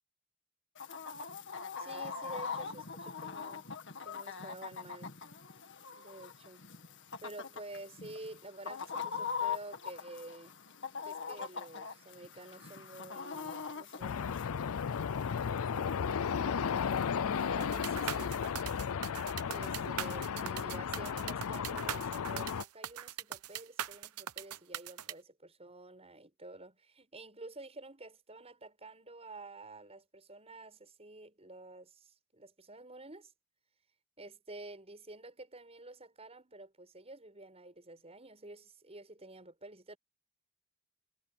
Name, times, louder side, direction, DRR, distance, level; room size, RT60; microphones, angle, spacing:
Chicken rooster, 0.8-18.5, left 6 dB, 55° left, 1.8 m, -43 dB
voice 1, 1.8-3.7 4.0-5.1 5.9-6.7 7.2-10.5 11.0-14.4 15.6-17.0 17.5-18.4 19.4-33.3 34.2-40.0, right 2 dB, 30° right, 7.6 m, -50 dB
sound 1, 14.0-22.6, left 7 dB, 70° left, 0.5 m, -34 dB
sound 2, 17.6-25.1, right 10 dB, 85° right, 0.8 m, -41 dB
head